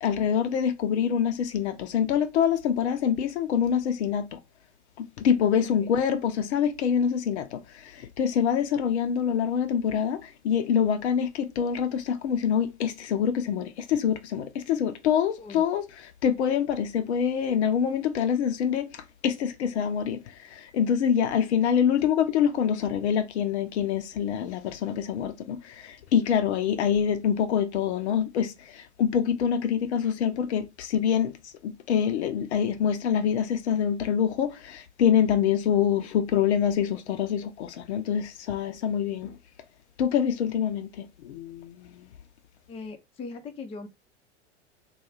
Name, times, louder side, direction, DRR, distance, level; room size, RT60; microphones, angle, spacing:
voice 1, 0.0-4.4 5.2-7.6 8.2-10.2 10.4-15.9 16.2-18.9 19.2-20.2 20.7-25.6 26.1-28.5 29.0-31.3 31.6-39.3 40.0-40.9 41.2-41.7, left 8 dB, 70° left, 0.6 m, -25 dB
voice 2, 5.6-5.9 15.4-15.6 42.7-43.9, left 4 dB, 15° left, 0.4 m, -41 dB
2.3 x 2.3 x 3.1 m
hypercardioid pair, 90°, 35 cm